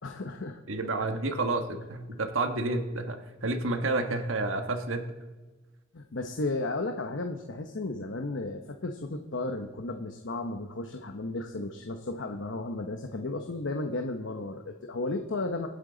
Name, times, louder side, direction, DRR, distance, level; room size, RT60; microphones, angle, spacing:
voice 1, 0.0-0.6 5.9-15.7, left 2 dB, 65° left, 4 dB, 0.9 m, -34 dB
voice 2, 0.7-5.1, right 2 dB, 85° right, 6 dB, 1.3 m, -30 dB
26.0 x 9.0 x 3.9 m, 1.2 s
head